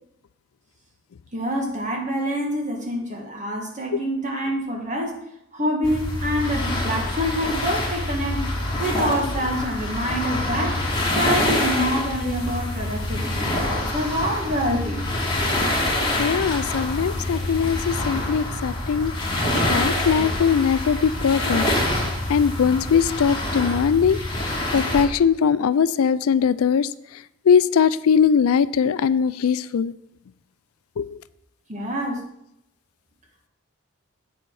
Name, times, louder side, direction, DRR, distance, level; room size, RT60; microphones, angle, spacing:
voice 1, 1.3-5.2 5.5-8.5 8.8-10.8 11.1-15.1 31.7-32.3, equal, 35° right, 1 dB, 1.7 m, -26 dB
sound 1, 5.8-25.0, left 1 dB, 20° left, 2.3 m, -26 dB
voice 2, 16.2-21.6 22.3-24.2 24.7-26.9 27.5-29.9 31.0-31.2, left 7 dB, 85° left, 16 dB, 0.4 m, -21 dB
8.0 x 7.1 x 4.7 m, 0.82 s
head